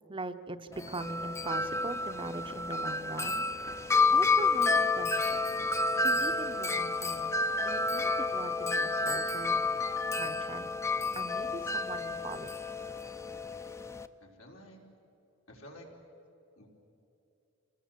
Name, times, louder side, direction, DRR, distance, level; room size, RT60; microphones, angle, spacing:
voice 1, 0.1-3.5 4.1-5.6 5.9-10.7 11.1-12.5, right 2 dB, 25° right, 9 dB, 0.7 m, -42 dB
Wind chime, 0.7-14.1, left 3 dB, 15° left, 0.6 m, -30 dB
voice 2, 14.2-14.8 15.5-15.9 16.6-16.7, equal, 85° left, 0 dB, 4.3 m, -51 dB
27.5 x 19.5 x 7.5 m, 2.9 s
head